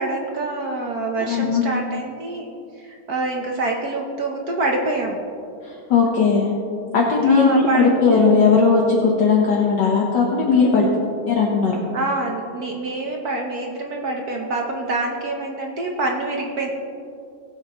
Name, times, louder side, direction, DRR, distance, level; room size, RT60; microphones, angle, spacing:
voice 1, 0.0-2.5 2.8-5.2 7.2-7.9 11.9-16.7, right 2 dB, 55° right, 1 dB, 1.3 m, -26 dB
voice 2, 1.2-1.6 5.6-6.5 6.9-10.9 11.3-11.8, left 4 dB, 60° left, -2 dB, 1.6 m, -17 dB
20.0 x 8.6 x 3.0 m, 2.5 s
omnidirectional pair, 2.3 m